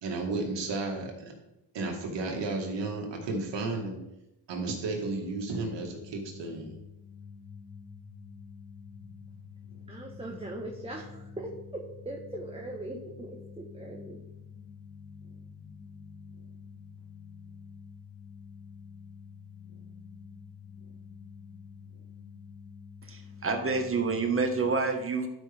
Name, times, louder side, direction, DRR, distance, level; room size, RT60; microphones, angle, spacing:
voice 1, 0.0-1.3 1.7-4.0 4.5-6.8, right 3 dB, 80° right, 1 dB, 2.2 m, -33 dB
sound 1, 5.8-24.7, left 5 dB, 60° left, 2.7 m, -48 dB
voice 2, 9.9-14.2, right 1 dB, 15° right, -1 dB, 1.4 m, -40 dB
voice 3, 23.0-25.3, right 4 dB, 30° right, 4 dB, 1.7 m, -28 dB
12.5 x 5.7 x 3.6 m, 0.91 s
cardioid pair, 85°, 42 cm